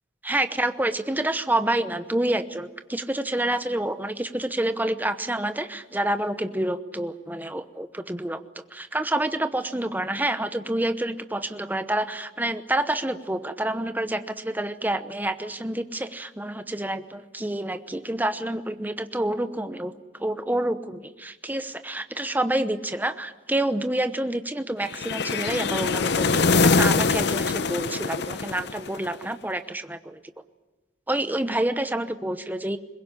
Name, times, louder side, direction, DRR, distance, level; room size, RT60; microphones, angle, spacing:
voice 1, 0.2-19.9 20.2-30.2 31.1-32.8, right 1 dB, 10° right, 10 dB, 0.9 m, -28 dB
sound 1, 24.9-29.2, left 4 dB, 60° left, 0.8 m, -23 dB
22.5 x 21.0 x 9.9 m, 1.1 s
head